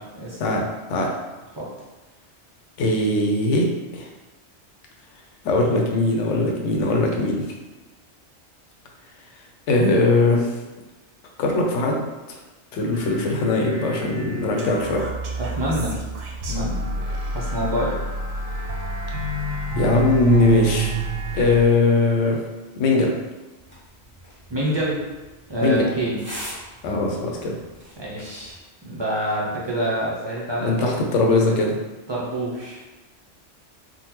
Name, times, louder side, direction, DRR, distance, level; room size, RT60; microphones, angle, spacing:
voice 1, 2.8-3.7 3.9-4.1 5.4-7.5 9.7-10.5 11.4-12.0 12.7-15.0 19.8-20.9 21.3-22.4 22.8-23.2 25.6-25.9 26.8-27.5 30.6-31.7, left 2 dB, 90° left, 1 dB, 0.9 m, -20 dB
sound 1, 12.9-21.7, right 3 dB, 85° right, 0.9 m, -28 dB
voice 2, 15.6-16.0 16.5-16.8 17.3-18.0 24.5-25.0 25.5-26.2 28.0-30.9 32.1-32.8, right 1 dB, 35° right, -6 dB, 0.5 m, -26 dB
sound 2, 23.6-28.6, equal, 10° right, 0.7 m, -42 dB
3.7 x 2.1 x 2.9 m, 1.1 s
omnidirectional pair, 1.2 m